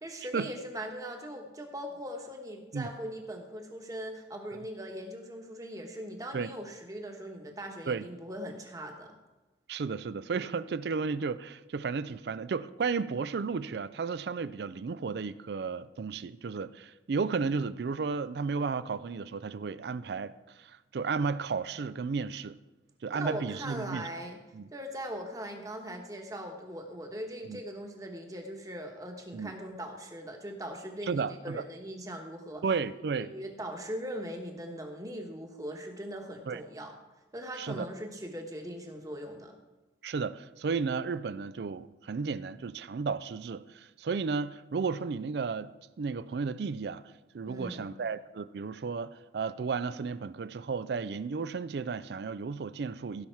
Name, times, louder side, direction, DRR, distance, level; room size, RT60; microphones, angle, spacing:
voice 1, 0.0-9.2 23.1-24.4 24.7-32.6 33.1-36.9 37.3-39.5 47.5-48.0, equal, 20° right, 1.2 m, -40 dB
voice 2, 9.7-20.3 20.6-22.6 23.0-24.1 24.5-24.6 27.5-27.6 29.3-29.5 31.1-31.6 32.6-33.3 36.5-36.6 37.6-37.9 40.0-47.0 47.3-53.3, right 5 dB, 60° right, 0.4 m, -33 dB
16.5 x 5.7 x 4.6 m
head